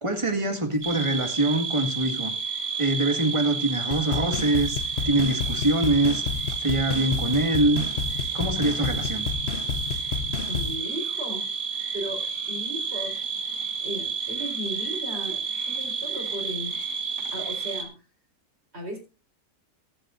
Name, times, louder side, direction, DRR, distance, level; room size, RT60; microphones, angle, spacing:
voice 1, 0.0-2.3 2.8-6.2 6.6-7.8 8.3-9.3, right 2 dB, 20° right, 4 dB, 1.9 m, -24 dB
sound 1, 0.8-17.9, right 5 dB, 55° right, 2.3 m, -31 dB
sound 2, 3.9-10.8, left 6 dB, 50° left, 0.9 m, -31 dB
voice 2, 10.4-11.5 11.9-13.4 13.8-16.8 17.3-18.0 18.7-19.0, equal, 35° right, 2 dB, 4.4 m, -36 dB
23.0 x 7.9 x 2.5 m, 0.30 s
omnidirectional pair, 1.8 m